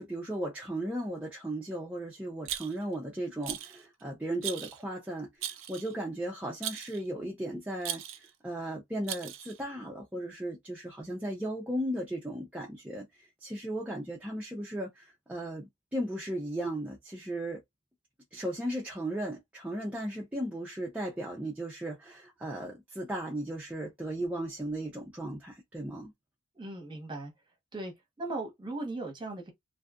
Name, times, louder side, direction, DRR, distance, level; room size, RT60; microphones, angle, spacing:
voice 1, 0.0-17.6 18.3-26.1, right 1 dB, 5° right, 0.4 m, -36 dB
Rattle, 2.5-3.0 3.4-3.8 4.4-4.8 5.4-5.9 6.6-7.0 7.8-8.3 9.1-9.6, right 11 dB, 65° right, 0.4 m, -38 dB
voice 2, 26.5-27.3 27.7-27.9 28.2-29.5, right 2 dB, 20° right, 0.9 m, -37 dB
2.6 x 2.3 x 2.3 m
head